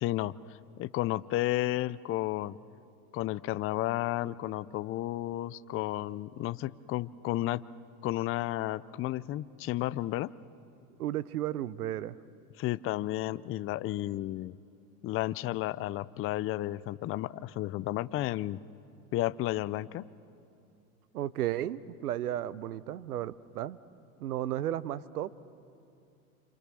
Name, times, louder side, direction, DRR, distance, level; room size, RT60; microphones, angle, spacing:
voice 1, 0.0-0.4 0.8-2.6 3.1-7.6 8.0-10.3 12.6-14.6 15.0-18.6 19.1-20.1, left 15 dB, 30° left, 16 dB, 0.5 m, -32 dB
voice 2, 11.0-12.2 21.1-23.8 24.2-25.5, right 12 dB, 85° right, 18 dB, 0.9 m, -34 dB
27.5 x 27.5 x 6.3 m, 2.6 s
hypercardioid pair, 95°, 44 cm